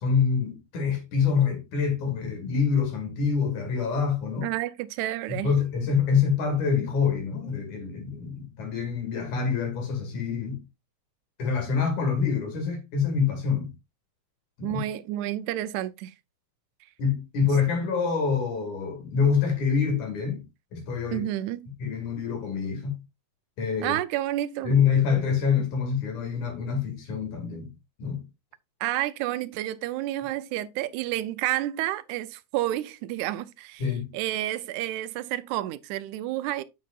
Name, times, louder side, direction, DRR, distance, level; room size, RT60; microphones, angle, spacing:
voice 1, 0.0-4.5 5.3-10.6 11.4-13.7 14.6-14.8 17.0-20.4 20.7-21.3 21.8-23.0 23.6-24.0 24.6-27.7 28.0-28.2 33.8-34.1, left 6 dB, 75° left, 3.6 m, -26 dB
voice 2, 4.4-5.6 14.6-16.1 21.1-21.6 23.8-24.7 28.8-33.8 34.1-36.6, right 14 dB, 85° right, 2.0 m, -30 dB
9.4 x 6.5 x 2.4 m
omnidirectional pair, 3.5 m